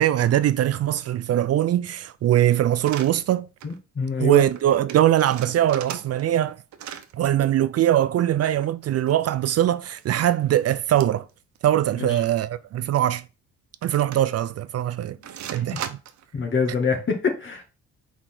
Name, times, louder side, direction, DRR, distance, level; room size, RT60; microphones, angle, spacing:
voice 1, 0.0-3.5 4.2-6.6 7.1-11.3 11.6-13.2 13.8-15.2 15.5-16.0, right 12 dB, 55° right, 0.5 m, -21 dB
sound 1, 2.8-3.1 3.6-3.8 4.0-4.1 4.4-4.6 4.9-6.4 6.7-7.1 8.5-9.5 10.0-10.1 10.9-11.3 11.6-11.7 12.1-12.4 12.9-13.0 13.8-14.5 15.2-16.3, right 9 dB, 70° right, 0.9 m, -38 dB
voice 2, 3.6-4.4 12.0-12.2 15.1-15.8 16.3-17.6, left 4 dB, 40° left, 2.0 m, -26 dB
4.6 x 4.2 x 5.8 m
cardioid pair, 90°, 30 cm